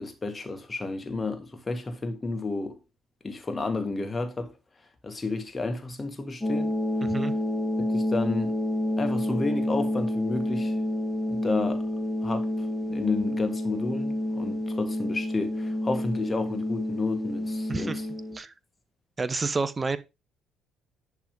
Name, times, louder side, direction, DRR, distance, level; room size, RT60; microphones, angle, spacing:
voice 1, 0.0-2.8 3.2-4.5 5.0-6.7 7.8-8.6 9.0-10.8 11.3-11.9 12.2-18.0, left 3 dB, 25° left, 1.9 m, -31 dB
sound 1, 6.4-18.4, left 1 dB, 5° left, 2.3 m, -29 dB
voice 2, 7.0-7.3 17.7-18.0 18.3-18.5 19.2-20.0, right 4 dB, 25° right, 0.7 m, -29 dB
10.5 x 3.7 x 5.2 m
figure-of-eight pair, 45°, 0 cm